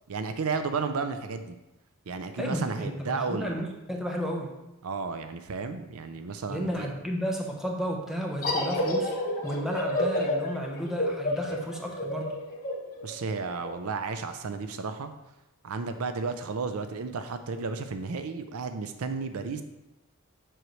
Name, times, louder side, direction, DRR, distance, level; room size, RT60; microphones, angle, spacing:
voice 1, 0.1-1.6 2.1-3.6 4.8-6.9 13.0-15.1 15.6-19.6, right 4 dB, 70° right, 9 dB, 0.5 m, -33 dB
voice 2, 2.4-4.5 6.5-9.1 9.4-12.3, equal, ahead, 0 dB, 0.9 m, -32 dB
sound 1, 8.4-13.7, left 1 dB, 40° left, 1.4 m, -30 dB
7.7 x 6.4 x 3.1 m, 0.96 s
head